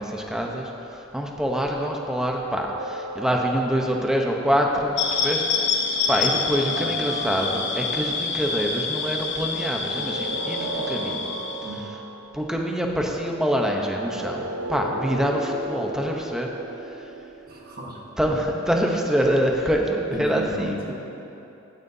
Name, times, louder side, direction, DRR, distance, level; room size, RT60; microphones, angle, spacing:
voice 1, 0.0-5.7 6.1-11.3 12.3-16.5 16.9-17.1 18.2-20.8, equal, 5° right, 0 dB, 0.8 m, -25 dB
sound 1, 2.2-4.7 6.4-8.2 9.6-12.3 13.7-18.2, right 2 dB, 70° right, 1.6 m, -36 dB
sound 2, 5.0-11.8, left 4 dB, 60° left, 1.0 m, -27 dB
voice 2, 17.5-18.0 18.2-18.4 19.2-19.3 20.1-20.9, equal, 50° right, -2 dB, 1.4 m, -35 dB
16.0 x 9.3 x 2.8 m, 2.9 s
head